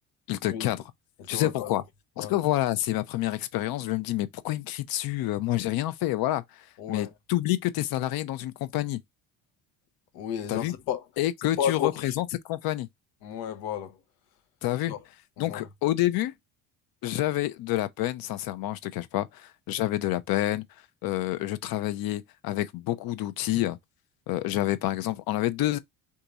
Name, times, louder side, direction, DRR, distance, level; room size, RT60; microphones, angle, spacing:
voice 1, 0.3-0.8 1.3-1.8 2.2-9.0 10.5-10.7 11.2-12.9 14.6-14.9 15.4-16.3 17.0-20.6 21.0-23.8 24.3-25.8, left 15 dB, 65° left, 0.7 m, -28 dB
voice 2, 1.2-1.7 2.2-2.3 6.8-7.1 10.1-11.0 11.6-12.1 13.2-14.0 14.9-15.0 15.4-15.7, left 9 dB, 90° left, 1.0 m, -32 dB
3.6 x 2.9 x 3.9 m
supercardioid pair, 85°, 38 cm